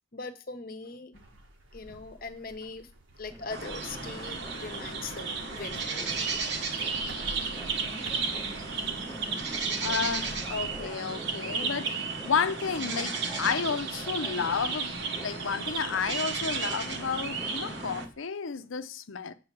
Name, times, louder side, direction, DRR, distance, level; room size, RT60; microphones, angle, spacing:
voice 1, 0.1-1.2 1.7-2.9 3.2-6.3 7.7-7.8, left 4 dB, 45° left, 0.8 m, -41 dB
sound 1, 1.1-10.9, right 1 dB, 75° right, 1.3 m, -49 dB
sound 2, 3.3-18.1, equal, 5° right, 0.4 m, -45 dB
sound 3, 3.5-18.1, right 4 dB, 55° right, 1.1 m, -33 dB
voice 2, 9.8-14.9 15.2-19.3, left 6 dB, 75° left, 0.6 m, -31 dB
7.8 x 4.0 x 6.0 m
head